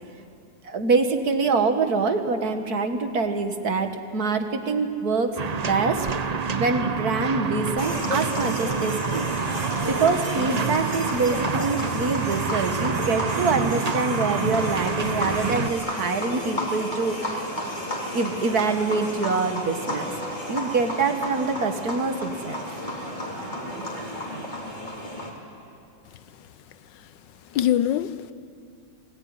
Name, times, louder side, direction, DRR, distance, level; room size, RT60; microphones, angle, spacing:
voice 1, 0.6-5.4 5.7-6.1 6.6-9.3 9.9-17.5 18.1-20.1 20.5-22.6, right 4 dB, 60° right, 2.0 m, -25 dB
sound 1, 5.4-15.7, right 5 dB, 85° right, 0.3 m, -27 dB
sound 2, 7.8-25.3, left 1 dB, 25° left, 3.7 m, -32 dB
voice 2, 26.1-26.5 26.9-27.2 27.4-28.3, left 11 dB, 90° left, 1.5 m, -26 dB
27.0 x 19.0 x 9.7 m
omnidirectional pair, 1.9 m